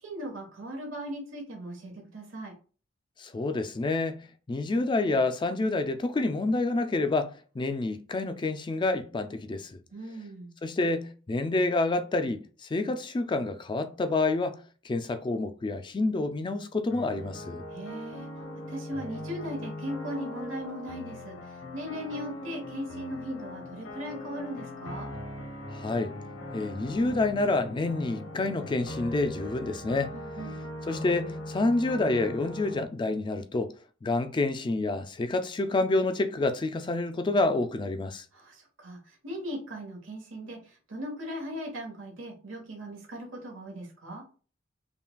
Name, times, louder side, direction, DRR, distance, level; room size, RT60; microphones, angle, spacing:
voice 1, 0.0-2.5 9.9-10.5 17.7-18.3 18.7-25.1 30.1-30.6 38.3-44.2, equal, 90° right, 1.2 m, -38 dB
voice 2, 3.2-4.1 4.5-9.8 10.6-14.6 14.8-17.6 25.7-26.1 26.5-30.1 30.9-33.7 34.0-38.2, left 2 dB, 25° left, 0.3 m, -28 dB
sound 1, 16.9-32.8, left 1 dB, 90° left, 0.8 m, -40 dB
5.5 x 2.3 x 2.2 m
head